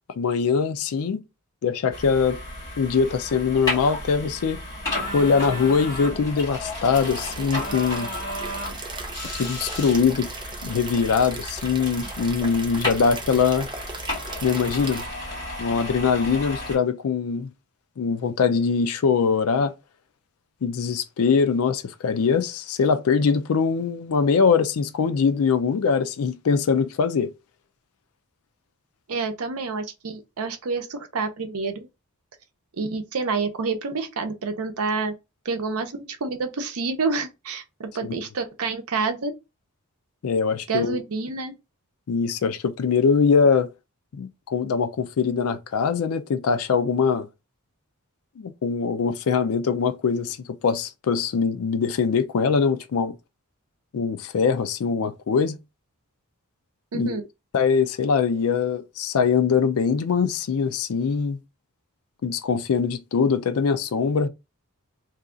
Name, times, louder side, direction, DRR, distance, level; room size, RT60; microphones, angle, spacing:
voice 1, 0.2-1.2 1.6-2.4 2.8-4.6 5.1-8.1 9.4-10.3 10.6-13.7 14.4-15.1 15.6-17.5 18.0-19.7 20.6-27.3 38.0-38.1 40.2-41.0 42.1-43.7 44.1-47.3 48.4-53.2 53.9-55.6 56.9-57.1 57.5-61.4 62.2-64.3, left 5 dB, 75° left, 0.4 m, -22 dB
sound 1, 1.9-16.8, left 1 dB, 20° left, 1.4 m, -33 dB
sound 2, 6.9-15.1, right 4 dB, 20° right, 0.4 m, -38 dB
voice 2, 29.1-31.9 32.8-35.1 35.4-39.3 40.7-41.5 56.9-57.2, right 4 dB, 75° right, 0.7 m, -28 dB
2.6 x 2.3 x 3.6 m
head